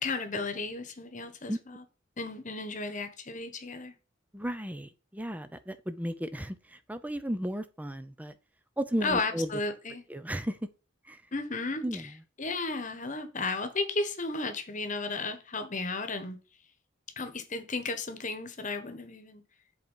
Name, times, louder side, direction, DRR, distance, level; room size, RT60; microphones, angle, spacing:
voice 1, 0.0-1.8 2.2-3.9 9.0-10.1 11.3-12.1 12.4-16.4 17.2-19.4, left 3 dB, 40° left, 1.3 m, -34 dB
voice 2, 4.3-8.3 8.8-9.5 10.1-10.6 11.1-11.2 11.8-12.0, equal, 10° right, 0.6 m, -34 dB
7.7 x 4.6 x 5.5 m
head